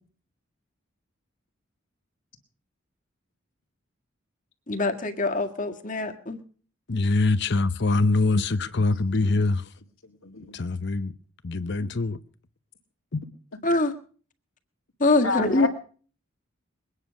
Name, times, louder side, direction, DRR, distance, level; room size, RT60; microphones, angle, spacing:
voice 1, 4.7-6.4 13.6-13.9 15.0-15.7, left 2 dB, 40° left, 1.8 m, -24 dB
voice 2, 6.9-9.7 10.5-11.1 11.4-12.2 13.1-13.2, left 3 dB, 60° left, 0.8 m, -24 dB
voice 3, 10.2-10.5 15.2-15.7, left 3 dB, 85° left, 2.0 m, -28 dB
22.0 x 9.7 x 6.3 m
head